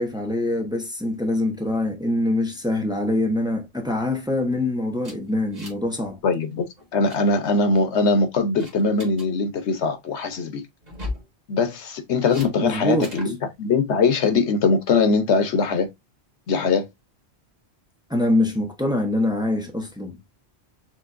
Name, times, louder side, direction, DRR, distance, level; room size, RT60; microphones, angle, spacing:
voice 1, 0.0-6.2 12.6-13.1 18.1-20.2, left 1 dB, 5° right, 0.9 m, -24 dB
sound 1, 5.0-5.9 6.2-6.4 6.8-7.2 7.7-8.1 8.6-9.3 10.8-11.3 12.3-12.5 13.0-13.3, left 2 dB, 40° right, 1.5 m, -37 dB
voice 2, 6.2-6.7 6.9-10.6 11.5-15.9 16.5-16.8, left 4 dB, 85° left, 1.2 m, -21 dB
7.0 x 2.6 x 2.5 m
omnidirectional pair, 1.1 m